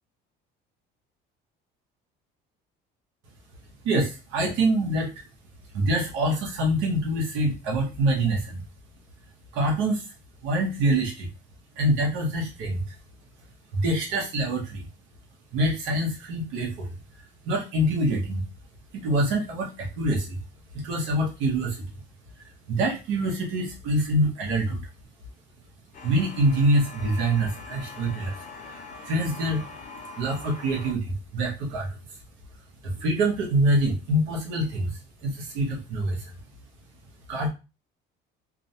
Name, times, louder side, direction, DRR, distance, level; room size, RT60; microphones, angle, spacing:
voice 1, 3.8-5.2 5.7-8.6 9.5-10.1 10.4-11.3 11.8-12.9 13.7-14.9 15.5-18.4 18.9-20.4 20.7-21.9 22.7-24.8 26.0-28.4 28.6-29.7 30.2-32.0 32.8-36.3 37.3-37.5, right 1 dB, 85° right, 0 dB, 0.8 m, -25 dB
sound 1, 25.9-30.9, left 3 dB, 40° left, 0.5 m, -42 dB
2.4 x 2.0 x 2.7 m, 0.28 s
cardioid pair, 135°, 20 cm